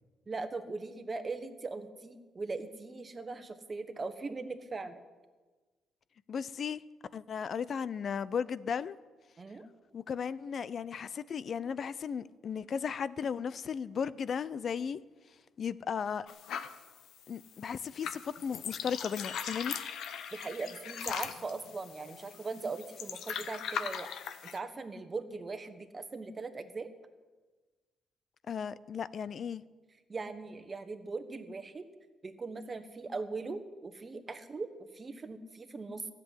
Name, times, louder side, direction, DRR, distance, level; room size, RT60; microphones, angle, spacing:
voice 1, 0.3-5.0 9.4-9.7 20.3-24.1 24.4-26.9 30.1-31.9 32.2-36.1, right 3 dB, 30° right, 1.3 m, -40 dB
voice 2, 6.3-6.8 7.1-9.0 9.9-15.0 15.6-16.3 17.3-19.7 28.5-29.6, left 7 dB, 55° left, 0.5 m, -35 dB
sound 1, 16.3-24.6, left 8 dB, 75° left, 0.9 m, -40 dB
13.5 x 7.7 x 9.9 m
cardioid pair, 90°, 0 cm